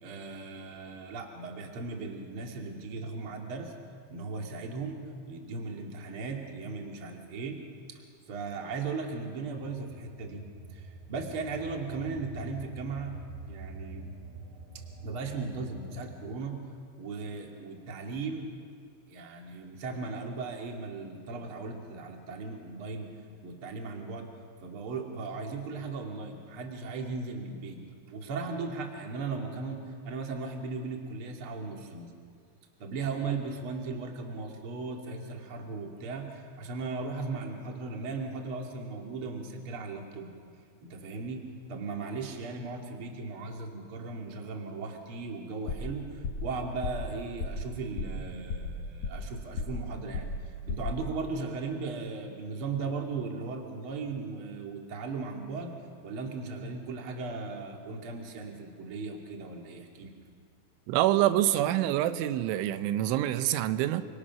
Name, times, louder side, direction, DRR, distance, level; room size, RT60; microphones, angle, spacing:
voice 1, 0.0-3.7 4.1-5.0 5.2-7.6 7.9-8.0 8.3-10.4 10.7-13.1 13.4-14.1 15.0-16.5 17.0-18.5 19.1-23.1 23.4-24.3 24.6-27.8 28.1-32.1 32.8-40.3 40.8-41.4 41.7-50.3 50.7-55.7 56.0-60.1, right 4 dB, 35° right, 2 dB, 2.5 m, -37 dB
sound 1, 9.6-16.1, right 1 dB, 65° right, 4.8 m, -45 dB
sound 2, 45.7-46.0 46.2-46.5 46.8-47.1 47.4-47.7 48.0-48.2 48.5-49.3 49.6-49.9 50.1-50.4 50.7-51.0, left 3 dB, 55° left, 3.1 m, -34 dB
voice 2, 60.9-64.0, right 13 dB, 90° right, 11 dB, 3.3 m, -26 dB
30.0 x 25.5 x 6.1 m, 2.1 s
omnidirectional pair, 5.4 m